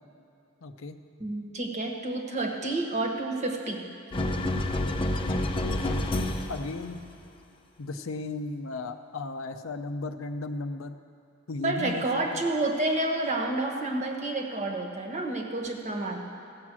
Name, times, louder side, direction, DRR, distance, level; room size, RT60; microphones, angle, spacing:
voice 1, 0.6-1.0 5.3-7.0 7.8-11.0 11.5-12.0 12.3-12.4, left 3 dB, 75° left, 8 dB, 0.6 m, -36 dB
voice 2, 1.2-3.8 11.6-16.2, right 2 dB, 35° right, 1 dB, 1.3 m, -29 dB
sound 1, 4.1-6.8, left 1 dB, 25° left, 0.7 m, -28 dB
15.5 x 7.5 x 6.1 m, 2.7 s
head